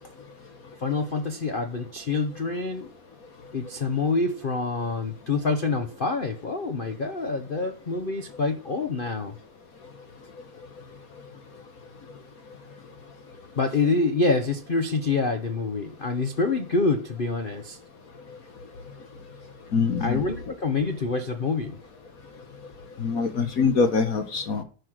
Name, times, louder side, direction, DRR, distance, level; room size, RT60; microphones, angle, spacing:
voice 1, 0.8-2.9 3.5-9.4 13.6-17.8 20.0-21.8, left 3 dB, 75° left, 0.4 m, -26 dB
voice 2, 19.7-20.2 23.0-24.6, left 5 dB, 50° left, 1.4 m, -24 dB
10.0 x 5.9 x 6.3 m
omnidirectional pair, 2.3 m